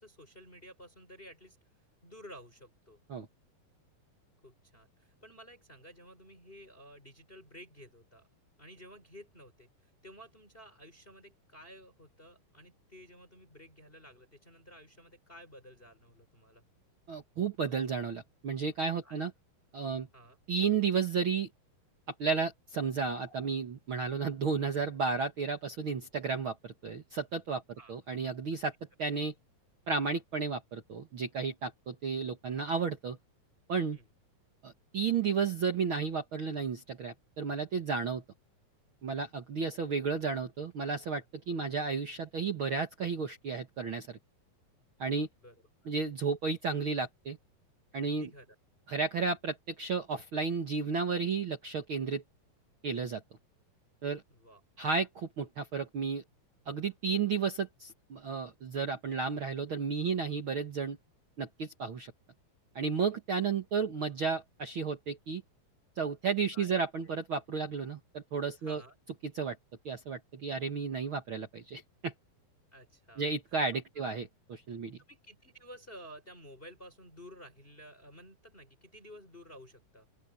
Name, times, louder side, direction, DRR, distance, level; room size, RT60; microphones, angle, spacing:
voice 1, 0.0-1.6 2.0-3.0 4.4-8.3 8.6-16.6 19.0-19.2 20.1-20.4 27.8-27.9 28.5-28.6 33.9-34.1 45.4-45.5 45.8-45.9 48.0-48.5 54.3-54.6 66.5-67.1 68.6-68.9 72.7-73.3 74.0-74.1 75.1-80.1, equal, 15° left, 6.8 m, -53 dB
voice 2, 17.1-19.3 19.7-20.1 20.5-21.5 22.2-28.7 29.0-29.3 29.9-33.2 33.7-34.0 34.6-38.2 39.0-44.2 45.0-45.3 45.8-47.4 47.9-48.3 48.9-52.2 52.8-53.2 54.0-54.2 54.8-56.2 56.6-61.0 61.4-62.1 62.7-65.4 65.9-68.8 69.3-69.6 69.8-72.1 73.2-74.3 74.7-75.0, right 5 dB, 55° right, 1.5 m, -33 dB
sound 1, 23.0-23.5, left 1 dB, 45° left, 8.0 m, -57 dB
open air
omnidirectional pair, 4.2 m